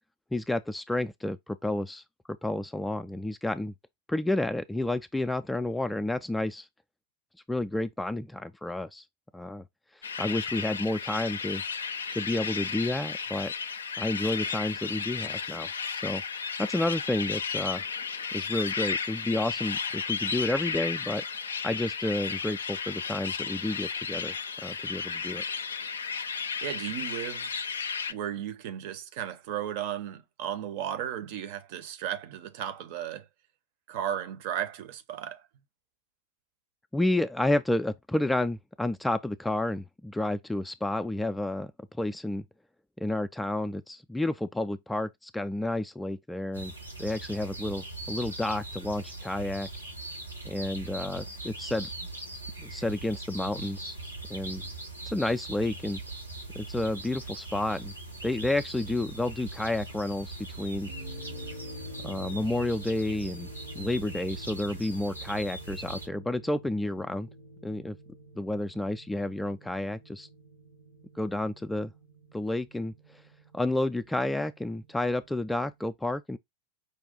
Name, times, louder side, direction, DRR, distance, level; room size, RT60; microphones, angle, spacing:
voice 1, 0.3-2.0 2.4-3.7 4.1-6.7 7.5-9.0 9.3-9.6 10.2-11.6 12.1-13.5 14.0-15.7 16.0-16.2 16.6-17.8 18.3-24.3 24.6-25.4 36.9-41.7 42.0-42.4 43.0-46.7 47.0-49.7 50.4-51.9 52.6-54.0 54.3-54.6 55.1-56.0 56.6-57.9 58.2-60.9 62.0-63.5 63.8-67.3 67.6-68.0 68.4-70.3 71.2-71.9 72.3-72.9 73.5-76.4, left 1 dB, 5° left, 0.3 m, -30 dB
sound 1, 10.0-28.1, left 6 dB, 70° left, 0.4 m, -34 dB
voice 2, 26.6-27.5 28.1-33.3 33.9-35.4, right 10 dB, 50° right, 0.7 m, -35 dB
sound 2, 46.5-66.1, right 2 dB, 90° right, 1.3 m, -41 dB
sound 3, 60.9-75.4, equal, 70° right, 1.0 m, -48 dB
5.3 x 2.3 x 3.8 m
figure-of-eight pair, 90°, 0 cm